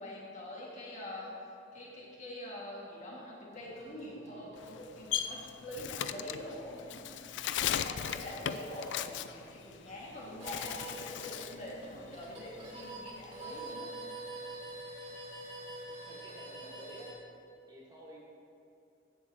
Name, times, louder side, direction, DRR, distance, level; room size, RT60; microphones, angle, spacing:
voice 1, 0.0-14.0, left 1 dB, 40° left, -5 dB, 2.1 m, -45 dB
sound 1, 3.5-17.1, right 2 dB, 40° right, 1.9 m, -48 dB
Bird, 4.6-10.1 10.4-11.6 12.0-13.7, left 10 dB, 80° left, 0.4 m, -37 dB
voice 2, 15.9-17.1 17.7-18.2, equal, 20° right, -5 dB, 1.7 m, -51 dB
14.5 x 7.7 x 2.9 m, 2.8 s
head